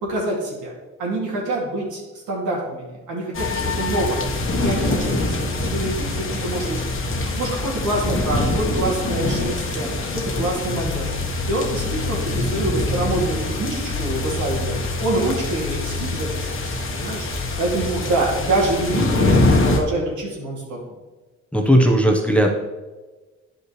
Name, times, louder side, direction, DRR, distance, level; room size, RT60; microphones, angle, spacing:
voice 1, 0.0-0.7 1.0-4.3 4.6-6.8 7.3-17.3 17.6-20.8, right 2 dB, 80° right, -3 dB, 2.5 m, -26 dB
sound 1, 3.3-19.8, left 2 dB, 45° left, 1.2 m, -24 dB
voice 2, 21.5-22.6, equal, 5° left, 1 dB, 0.9 m, -16 dB
10.0 x 5.5 x 3.2 m, 1.2 s
cardioid pair, 90°, 30 cm